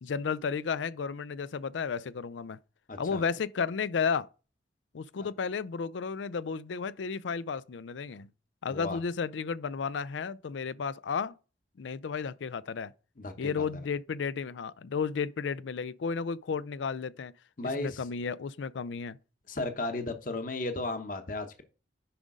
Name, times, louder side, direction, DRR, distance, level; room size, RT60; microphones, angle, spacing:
voice 1, 0.0-2.6 3.0-4.3 4.9-8.3 8.6-11.4 11.8-12.9 13.4-17.3 17.8-19.2, left 5 dB, 85° left, 0.4 m, -33 dB
voice 2, 2.9-3.2 5.2-5.3 8.7-9.0 13.2-13.9 17.6-18.0 19.5-21.6, left 2 dB, 45° left, 0.9 m, -35 dB
10.0 x 5.2 x 3.7 m
head